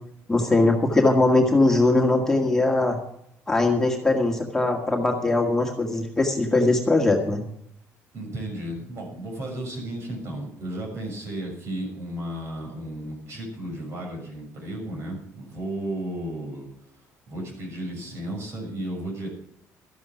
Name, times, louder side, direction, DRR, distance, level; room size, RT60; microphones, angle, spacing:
voice 1, 0.3-3.0 3.5-7.4, left 2 dB, 10° left, 0 dB, 2.0 m, -21 dB
voice 2, 8.1-19.3, right 1 dB, 55° right, 2 dB, 6.4 m, -34 dB
13.0 x 11.0 x 6.1 m, 0.72 s
cardioid pair, 115°, 6 cm